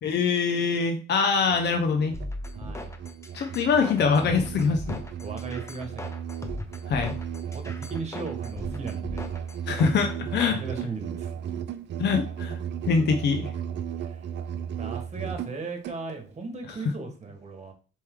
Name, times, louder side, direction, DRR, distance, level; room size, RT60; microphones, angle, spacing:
voice 1, 0.0-2.1 3.3-5.0 6.9-7.1 9.7-10.6 12.0-12.6 12.9-13.5, left 5 dB, 60° left, 5 dB, 0.7 m, -24 dB
Musical instrument, 1.4-16.0, right 9 dB, 65° right, 0.5 m, -35 dB
sound 1, 2.1-10.6, left 2 dB, 15° left, 0.6 m, -39 dB
voice 2, 2.5-2.9 5.2-6.2 7.4-9.3 10.5-11.3 14.0-14.3 14.8-17.7, right 3 dB, 35° right, 5 dB, 1.3 m, -37 dB
4.3 x 3.1 x 3.6 m, 0.36 s
cardioid pair, 90°, 20 cm